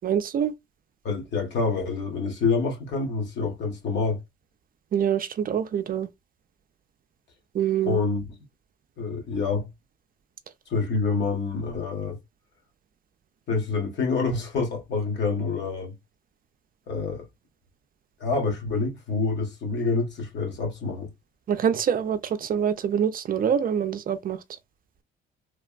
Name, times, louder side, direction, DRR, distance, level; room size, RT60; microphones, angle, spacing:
voice 1, 0.0-0.5 4.9-6.1 7.5-8.0 21.5-24.4, right 8 dB, 45° right, 0.4 m, -25 dB
voice 2, 1.0-4.2 7.8-8.4 9.0-9.7 10.7-12.2 13.5-15.9 16.9-17.2 18.2-21.1, left 4 dB, 65° left, 1.4 m, -27 dB
3.3 x 2.1 x 2.3 m
cardioid pair, 90°, 20 cm